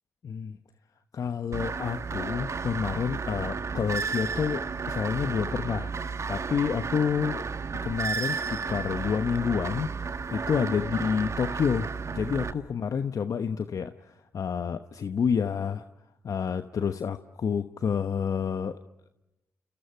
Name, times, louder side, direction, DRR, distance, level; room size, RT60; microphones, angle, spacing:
voice 1, 0.2-0.6 1.1-7.4 7.8-9.9 10.3-15.8 16.2-18.8, left 6 dB, 60° left, 9 dB, 1.0 m, -29 dB
sound 1, 1.5-12.5, right 5 dB, 50° right, 1.8 m, -33 dB
29.5 x 29.0 x 5.8 m, 0.94 s
hypercardioid pair, 40°, 7 cm